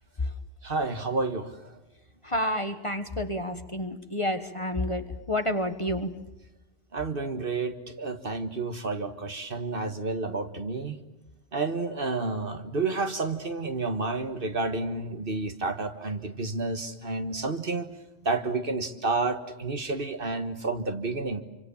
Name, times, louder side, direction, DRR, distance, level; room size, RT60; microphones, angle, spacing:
voice 1, 0.6-1.7 6.9-11.0 11.5-17.9 18.2-21.4, right 3 dB, 50° right, 8 dB, 1.7 m, -30 dB
voice 2, 2.2-6.1, left 1 dB, 25° left, 8 dB, 1.3 m, -29 dB
27.5 x 25.0 x 7.2 m, 1.0 s
omnidirectional pair, 1.2 m